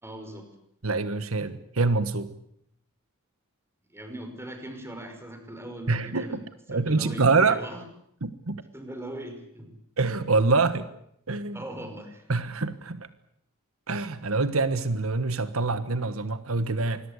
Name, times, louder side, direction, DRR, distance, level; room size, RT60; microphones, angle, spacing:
voice 1, 0.0-0.5 3.9-6.4 6.7-7.8 8.7-9.8 11.5-12.3, right 1 dB, 10° right, 6 dB, 5.4 m, -40 dB
voice 2, 0.8-2.4 5.9-6.4 6.7-7.6 8.2-8.6 10.0-10.9 11.3-11.6 12.3-13.1 13.9-17.0, right 3 dB, 80° right, 12 dB, 1.4 m, -25 dB
26.0 x 21.5 x 8.3 m, 0.73 s
head